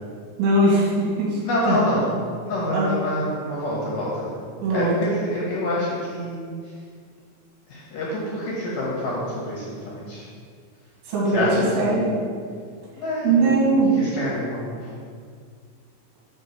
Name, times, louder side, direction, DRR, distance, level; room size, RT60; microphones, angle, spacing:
voice 1, 0.4-1.4 1.6-1.8 2.7-2.9 4.6-4.9 11.1-12.1 13.2-13.9, right 2 dB, 85° right, -5 dB, 4.3 m, -20 dB
voice 2, 1.4-4.3 4.7-6.7 7.7-10.3 11.3-12.2 13.0-14.9, left 1 dB, 65° left, -5 dB, 2.3 m, -27 dB
8.9 x 3.7 x 6.1 m, 2.1 s
omnidirectional pair, 5.1 m